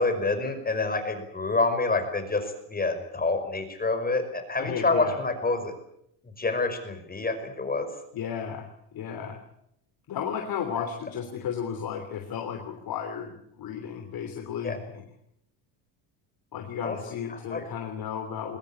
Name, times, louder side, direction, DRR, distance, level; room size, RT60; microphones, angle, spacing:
voice 1, 0.0-5.7 6.4-7.9 14.6-14.8 16.8-17.0 17.3-17.6, left 3 dB, 20° left, 7 dB, 5.4 m, -27 dB
voice 2, 4.6-5.2 8.1-9.4 10.1-15.0 16.5-18.6, left 8 dB, 45° left, 4 dB, 3.4 m, -34 dB
22.0 x 20.5 x 8.5 m, 0.75 s
cardioid pair, 120°, 49 cm